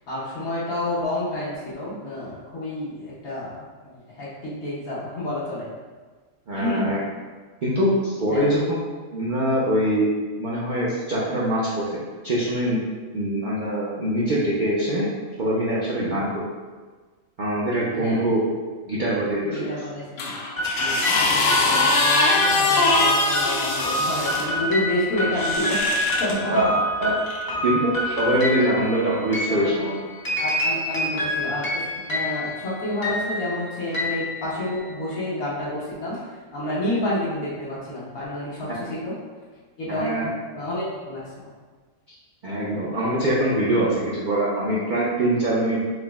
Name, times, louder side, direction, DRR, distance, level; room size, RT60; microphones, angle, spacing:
voice 1, 0.1-5.7 6.5-6.9 8.3-8.5 16.0-16.2 18.0-18.2 19.4-20.3 20.8-26.6 29.5-29.8 30.4-39.1 39.8-41.5, left 1 dB, 90° left, -9 dB, 1.6 m, -29 dB
voice 2, 6.5-7.0 7.6-8.8 9.1-10.1 10.4-11.8 12.2-12.8 13.1-15.1 15.4-16.3 17.4-18.4 18.9-19.7 21.1-21.2 26.5-26.7 27.0-27.1 27.6-29.9 39.9-40.2 42.1-42.2 42.4-45.9, right 1 dB, 55° right, -7 dB, 0.5 m, -23 dB
sound 1, 20.2-24.5 25.3-26.4 27.3-27.4, left 3 dB, 65° left, 0.6 m, -22 dB
sound 2, 20.6-35.0, equal, 25° left, 0.5 m, -27 dB
4.8 x 2.0 x 3.4 m, 1.4 s
omnidirectional pair, 1.5 m